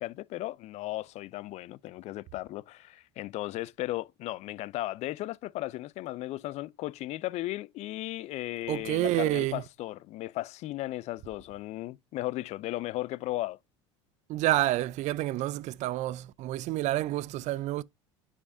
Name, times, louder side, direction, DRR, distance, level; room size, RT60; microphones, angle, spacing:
voice 1, 0.0-13.6, left 17 dB, 50° left, 0.4 m, -36 dB
voice 2, 8.7-9.6 14.3-17.8, right 16 dB, 55° right, 0.5 m, -29 dB
9.7 x 4.9 x 2.6 m
hypercardioid pair, 80°, 15 cm